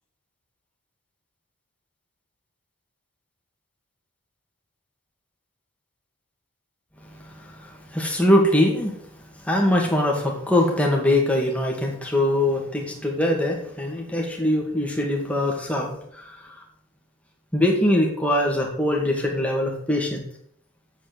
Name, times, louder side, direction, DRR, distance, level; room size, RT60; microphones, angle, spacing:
voice 1, 7.1-8.9 9.4-16.4 17.5-20.2, left 1 dB, 5° left, 0 dB, 2.2 m, -22 dB
8.1 x 7.9 x 8.0 m, 0.68 s
head